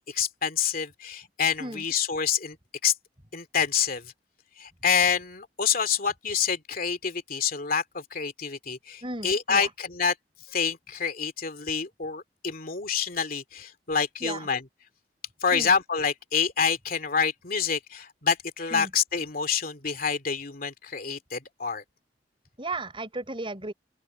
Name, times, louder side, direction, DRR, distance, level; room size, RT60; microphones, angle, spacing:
voice 1, 0.0-2.6 2.8-2.9 3.3-4.0 4.6-10.1 10.5-14.6 15.4-21.8, left 6 dB, 55° left, 2.7 m, -27 dB
voice 2, 9.0-9.7 14.2-14.5 15.5-15.7 18.7-18.9 22.6-23.7, right 2 dB, 30° right, 6.2 m, -35 dB
open air
head